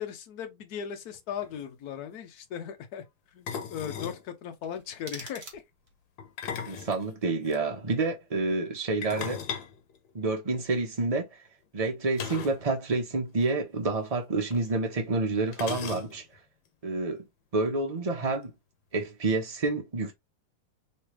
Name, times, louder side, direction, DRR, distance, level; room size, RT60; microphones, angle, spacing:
voice 1, 0.0-3.0 3.3-5.6 6.7-6.8, left 8 dB, 65° left, 1.1 m, -38 dB
sound 1, 1.1-1.2 1.4-1.6 3.5-4.2 6.2-7.6 9.0-10.7 12.1-12.7 12.9-13.0 13.3-13.5 14.5-14.6 15.5-16.4, left 7 dB, 80° left, 1.5 m, -37 dB
sound 2, 4.6-6.1, right 4 dB, 45° right, 1.3 m, -46 dB
voice 2, 6.7-9.4 10.1-11.3 11.7-16.2 16.8-17.2 17.5-18.5 18.9-20.1, right 3 dB, 65° right, 0.3 m, -28 dB
3.3 x 3.2 x 3.0 m
omnidirectional pair, 2.0 m